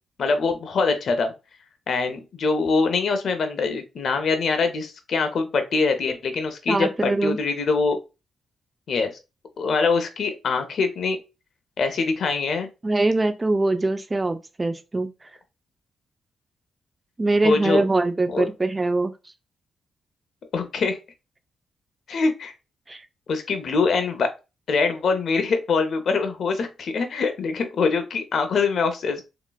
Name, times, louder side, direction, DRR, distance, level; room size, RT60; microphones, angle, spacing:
voice 1, 0.2-1.3 1.9-8.0 8.9-9.1 9.6-11.2 11.8-12.7 17.4-17.8 18.3-18.5 20.5-21.0 22.1-22.5 23.3-24.3 24.7-29.2, left 4 dB, 65° left, 0.7 m, -23 dB
voice 2, 6.7-7.4 12.8-15.1 17.2-19.1 22.9-23.0, right 2 dB, 25° right, 0.4 m, -22 dB
3.0 x 2.9 x 2.3 m
cardioid pair, 70°, 0 cm